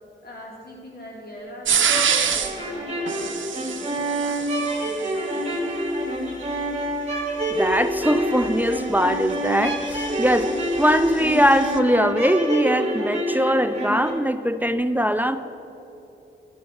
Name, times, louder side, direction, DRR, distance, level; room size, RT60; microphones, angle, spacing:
voice 1, 0.2-5.7, equal, 55° left, -3 dB, 1.4 m, -42 dB
sound 1, 1.7-2.6 3.1-5.1 7.7-11.8, right 7 dB, 85° right, 0.6 m, -27 dB
sound 2, 1.8-14.1, right 1 dB, 30° right, 1.6 m, -27 dB
voice 2, 7.5-15.4, equal, 10° right, 10 dB, 0.3 m, -21 dB
12.0 x 4.4 x 6.4 m, 2.9 s
wide cardioid pair, 90°, 19 cm